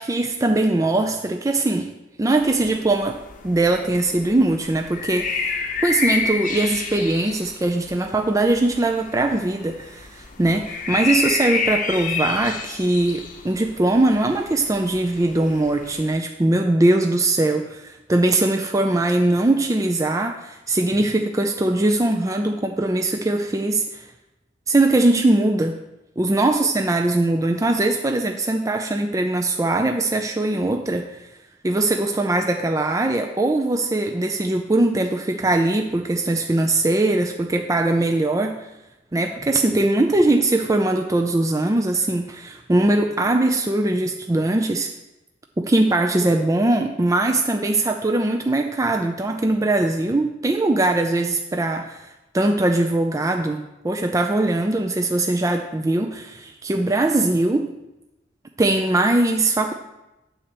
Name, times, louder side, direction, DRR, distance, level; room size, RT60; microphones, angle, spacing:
voice 1, 0.0-1.9 2.2-3.2 3.4-5.6 5.8-24.1 24.7-25.7 26.2-31.2 31.6-38.6 39.1-44.9 45.6-57.7 58.6-59.7, right 2 dB, 15° right, 4 dB, 0.4 m, -21 dB
sound 1, 2.4-16.1, left 4 dB, 45° left, 0.8 m, -30 dB
9.1 x 4.2 x 6.8 m, 0.96 s
head